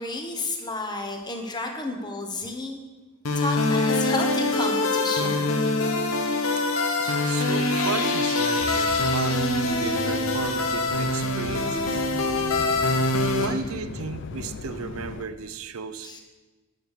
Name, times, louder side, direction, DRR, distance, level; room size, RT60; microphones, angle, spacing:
voice 1, 0.0-2.8 3.3-5.5 7.0-7.3 12.2-12.3 12.8-13.0 13.4-13.6 16.0-16.2, left 2 dB, 20° left, 3 dB, 1.1 m, -32 dB
sound 1, 3.2-13.5, left 2 dB, 75° left, 1.1 m, -24 dB
voice 2, 7.2-12.1 13.4-16.2, right 5 dB, 85° right, 11 dB, 0.7 m, -34 dB
sound 2, 8.6-15.2, left 3 dB, 55° left, 0.5 m, -38 dB
10.0 x 6.5 x 6.7 m, 1.3 s
head